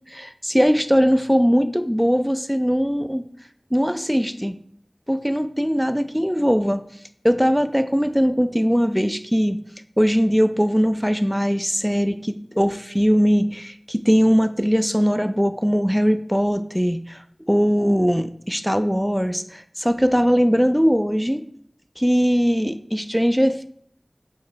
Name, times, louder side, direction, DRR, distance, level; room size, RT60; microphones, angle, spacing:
voice 1, 0.1-3.2 3.7-4.6 5.1-6.8 7.2-9.6 10.0-17.2 17.5-21.4 22.0-23.7, equal, ahead, 9 dB, 0.4 m, -20 dB
8.6 x 3.2 x 4.6 m, 0.62 s
wide cardioid pair, 40°, 0 cm